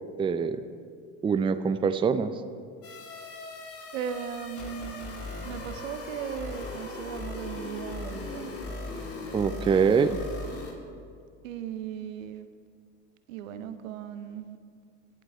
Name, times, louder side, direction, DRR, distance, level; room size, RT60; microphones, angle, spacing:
voice 1, 0.2-0.6 1.2-2.3 9.3-10.2, right 6 dB, 15° right, 11 dB, 0.4 m, -24 dB
sound 1, 2.8-10.7, left 2 dB, 35° left, 2.2 m, -38 dB
voice 2, 3.9-8.5 11.4-12.5 13.3-14.6, right 8 dB, 85° right, 10 dB, 0.8 m, -37 dB
18.5 x 7.9 x 3.5 m, 2.3 s
hypercardioid pair, 90°, 38 cm